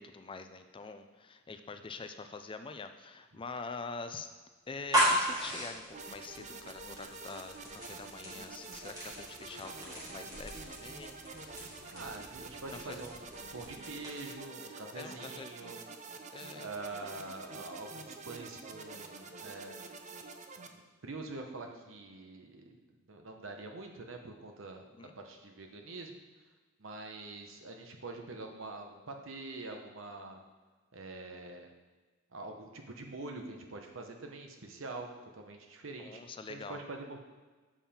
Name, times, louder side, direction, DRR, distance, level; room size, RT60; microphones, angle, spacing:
voice 1, 0.0-4.3 4.7-11.6 12.7-13.0 14.9-15.5 16.3-16.7 24.9-25.1 36.0-36.8, left 4 dB, 25° left, 8 dB, 0.4 m, -45 dB
sound 1, 4.7-14.4, equal, 20° right, 2.5 m, -37 dB
sound 2, 5.9-20.7, right 3 dB, 35° right, 0.5 m, -47 dB
voice 2, 11.9-13.2 13.5-15.8 16.6-19.7 20.7-22.8 23.1-24.8 25.2-26.2 26.8-30.4 30.9-31.7 32.3-36.2 36.5-37.2, right 2 dB, 75° right, 4 dB, 1.0 m, -45 dB
7.4 x 5.4 x 4.3 m, 1.3 s
head